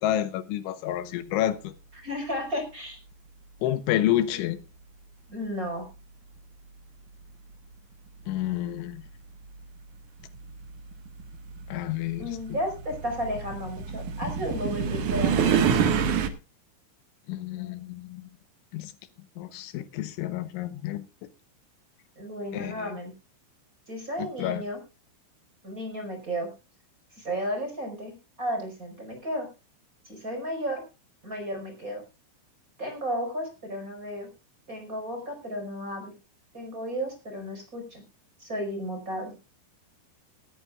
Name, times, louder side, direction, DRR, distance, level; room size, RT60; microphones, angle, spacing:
voice 1, 0.0-1.7 3.6-4.6 8.3-9.0 11.7-12.6 17.3-18.3 18.7-18.9 19.4-21.0 22.5-22.9 24.2-24.6, left 13 dB, 80° left, 3.3 m, -29 dB
voice 2, 2.0-3.0 3.9-4.4 5.3-5.9 12.2-15.6 22.2-23.1 23.9-24.8 25.6-26.5 27.2-29.5 30.0-30.8 31.2-32.0 32.8-34.3 34.7-36.1 36.5-38.0 38.4-39.3, equal, 15° right, 4.9 m, -33 dB
Train Passing By Medium Speed L to R Night Amb, 9.1-9.2 10.2-16.3, right 7 dB, 60° right, 2.2 m, -27 dB
19.0 x 14.0 x 2.4 m
omnidirectional pair, 5.5 m